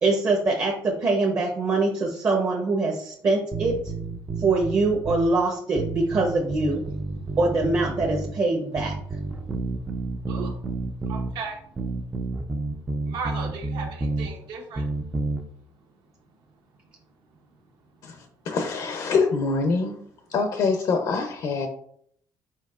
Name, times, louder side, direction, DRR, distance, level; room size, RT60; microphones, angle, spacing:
voice 1, 0.0-3.8 4.4-6.8 7.4-8.9, right 3 dB, 40° right, 1 dB, 0.8 m, -23 dB
sound 1, 3.5-5.3 5.8-8.4 8.8-11.3 11.8-14.3 14.8-15.4, right 3 dB, 15° right, 0.4 m, -30 dB
voice 2, 11.1-11.6 13.1-14.8, right 4 dB, 75° right, 2 dB, 1.1 m, -35 dB
voice 3, 18.0-20.0 20.3-21.7, left 4 dB, 55° left, 5 dB, 0.6 m, -25 dB
4.6 x 4.4 x 2.4 m, 0.65 s
cardioid pair, 135°, 8 cm